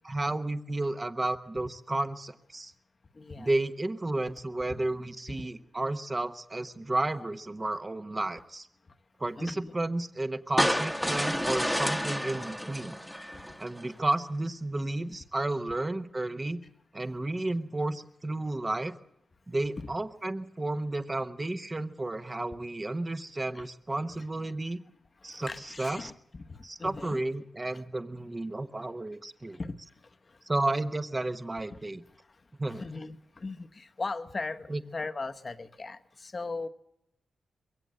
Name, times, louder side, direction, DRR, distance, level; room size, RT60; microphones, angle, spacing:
voice 1, 0.0-2.7 3.4-8.7 9.2-13.0 13.6-16.6 16.9-18.9 19.5-24.8 25.2-26.1 26.6-29.6 30.5-32.0 32.6-32.8 34.7-34.8, right 2 dB, 25° right, 10 dB, 1.0 m, -32 dB
voice 2, 3.1-3.5 4.7-4.8 5.4-5.5 6.8-6.9 9.4-9.7 19.8-19.9 23.5-24.2 24.6-24.7 25.2-27.2 27.7-27.8 29.5-29.7 30.0-30.4 31.7-31.8 32.1-36.7, left 3 dB, 35° left, 9 dB, 1.0 m, -39 dB
sound 1, 10.6-13.8, equal, ahead, 1.2 m, -30 dB
22.0 x 16.5 x 7.7 m, 0.83 s
cardioid pair, 95°, 0 cm